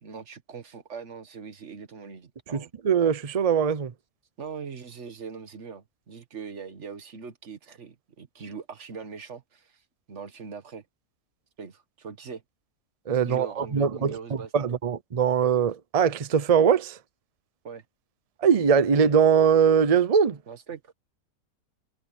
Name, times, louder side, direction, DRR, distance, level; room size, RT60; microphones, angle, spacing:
voice 1, 0.0-2.7 4.4-9.8 10.1-10.8 11.6-12.4 13.1-14.7 17.6-17.8 20.5-20.9, right 6 dB, 45° right, 1.5 m, -41 dB
voice 2, 2.5-3.9 13.1-17.0 18.4-20.4, right 7 dB, 65° right, 0.3 m, -22 dB
omnidirectional pair, 1.8 m